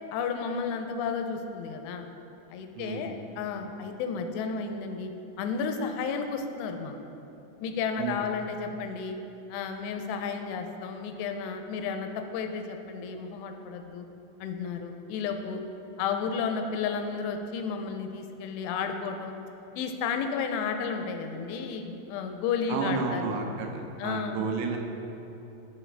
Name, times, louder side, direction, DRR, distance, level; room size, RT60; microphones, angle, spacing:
voice 1, 0.1-2.1 2.5-5.1 5.4-7.0 7.6-9.2 9.5-14.1 14.4-15.6 16.0-19.4 19.8-23.4 24.0-24.5, left 5 dB, 85° left, 6 dB, 2.7 m, -32 dB
voice 2, 2.7-3.2 8.0-8.2 22.7-24.8, right 5 dB, 90° right, 3 dB, 2.9 m, -32 dB
12.0 x 4.8 x 3.3 m, 3.0 s
omnidirectional pair, 4.9 m